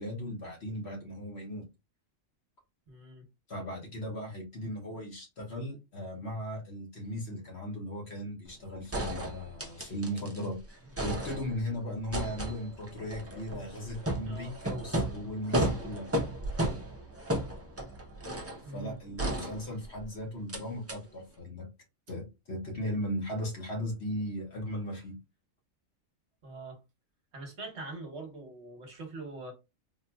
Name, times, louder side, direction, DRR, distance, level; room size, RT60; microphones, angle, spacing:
voice 1, 0.0-1.6 3.5-10.6 11.0-16.1 18.7-21.7 22.1-25.2, equal, 55° left, 1.4 m, -37 dB
voice 2, 2.9-3.3 14.3-14.5 18.6-19.0 26.4-26.8 27.3-29.5, right 3 dB, 60° right, 1.2 m, -43 dB
sound 1, 8.5-8.6 8.9-10.5 10.7-11.7 12.1-18.6 19.2-20.0 20.5-20.6 20.9-21.0, right 1 dB, 20° right, 0.4 m, -34 dB
3.8 x 2.7 x 2.2 m
omnidirectional pair, 1.3 m